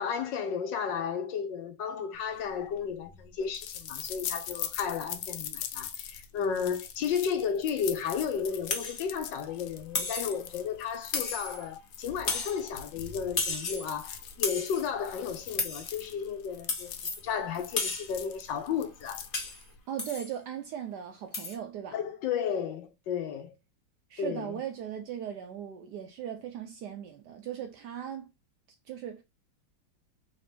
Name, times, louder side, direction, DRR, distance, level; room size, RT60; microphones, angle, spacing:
voice 1, 0.0-16.9 17.2-19.2 21.9-23.5 24.2-24.6, left 7 dB, 70° left, 1.3 m, -33 dB
sound 1, 2.3-19.8, left 9 dB, 90° left, 1.5 m, -42 dB
sound 2, 8.7-9.0 9.9-10.4 11.1-11.6 12.3-12.6 13.4-13.9 14.4-14.8 15.6-15.9 16.7-17.2 17.8-18.2 19.3-19.6 20.0-20.3 21.3-21.6, left 4 dB, 45° left, 0.6 m, -33 dB
voice 2, 19.9-22.0 24.1-28.3 28.9-29.2, right 9 dB, 75° right, 1.0 m, -38 dB
4.1 x 2.9 x 3.3 m
omnidirectional pair, 2.2 m